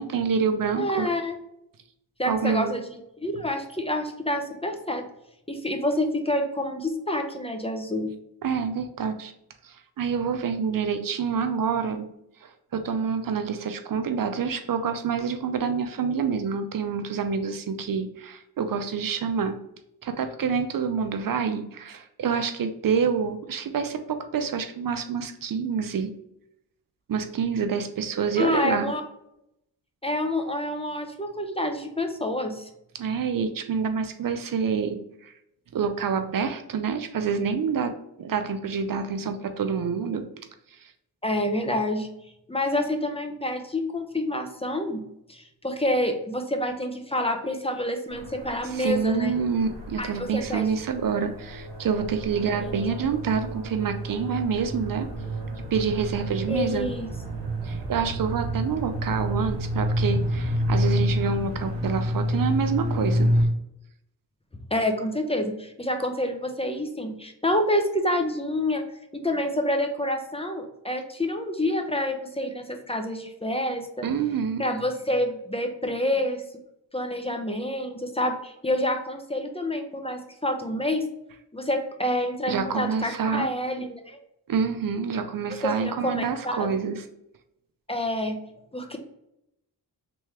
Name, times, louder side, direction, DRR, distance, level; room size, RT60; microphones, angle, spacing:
voice 1, 0.0-1.1 2.3-2.7 8.4-9.3 9.6-12.1 12.4-19.6 20.0-26.1 27.1-28.9 33.0-35.3 35.7-37.9 38.2-40.2 40.7-40.9 48.6-55.1 55.7-56.9 57.6-63.4 74.0-74.7 82.5-83.5 84.5-87.0, right 6 dB, 55° right, 8 dB, 0.5 m, -27 dB
voice 2, 0.8-1.4 2.2-2.9 3.2-5.0 5.5-8.1 28.4-29.0 30.0-32.7 41.2-42.1 42.5-45.0 45.3-49.3 50.0-50.6 52.6-52.7 56.5-57.1 64.7-68.8 69.1-74.0 74.6-76.4 76.9-81.0 81.5-84.2 85.6-86.8 87.9-88.4 88.7-89.0, left 1 dB, 15° left, 5 dB, 0.6 m, -28 dB
sound 1, 48.1-63.4, equal, 75° right, 1.5 m, -29 dB
3.4 x 3.1 x 3.1 m, 0.80 s
cardioid pair, 70°, 40 cm